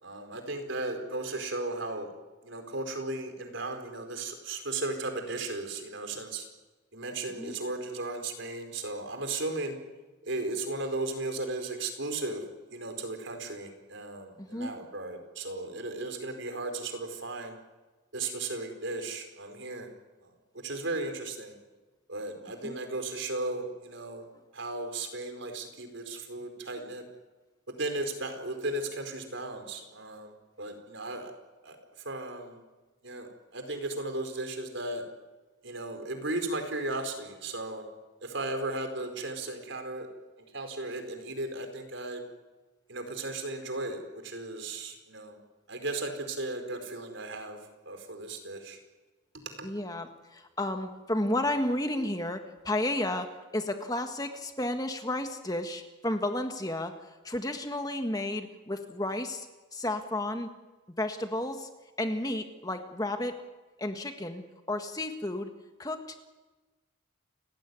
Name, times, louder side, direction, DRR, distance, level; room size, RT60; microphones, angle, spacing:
voice 1, 0.0-2.1 2.4-6.4 6.9-9.8 10.2-12.4 12.7-17.6 18.1-19.9 20.6-21.5 22.1-24.3 24.5-27.0 27.7-30.3 30.6-31.3 31.6-31.8 32.0-32.6 33.0-35.0 35.6-37.9 38.2-40.1 40.5-42.2 42.9-45.4 45.7-47.6 47.9-48.8 49.3-49.7, right 2 dB, 65° right, 6 dB, 4.6 m, -35 dB
voice 2, 14.4-14.7 22.6-22.8 49.6-56.9 57.2-60.5 61.0-61.7 62.0-63.4 63.8-64.4 64.7-65.5 65.8-66.3, left 1 dB, 20° left, 6 dB, 1.6 m, -32 dB
30.0 x 17.0 x 9.5 m, 1.2 s
head